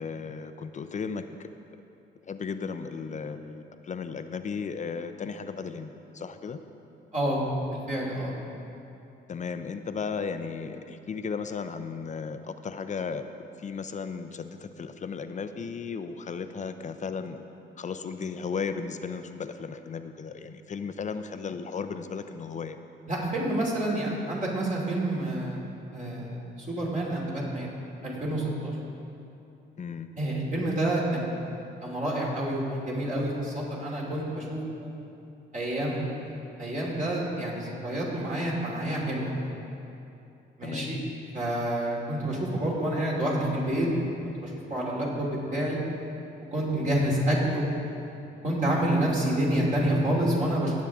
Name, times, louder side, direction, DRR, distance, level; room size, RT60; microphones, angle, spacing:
voice 1, 0.0-1.5 2.3-6.6 9.3-13.3 13.6-17.5 17.8-22.8 29.8-30.1 40.6-40.9, left 5 dB, 40° left, 9 dB, 0.6 m, -35 dB
voice 2, 7.7-8.3 23.1-25.6 25.9-27.7 28.0-28.7 30.2-31.3 31.8-34.9 35.5-36.2 36.6-39.3 40.6-41.0 41.3-45.8 46.5-47.7 48.4-50.7, right 1 dB, 40° right, -4 dB, 2.8 m, -28 dB
17.0 x 7.3 x 3.6 m, 2.8 s
cardioid pair, 90°, 20 cm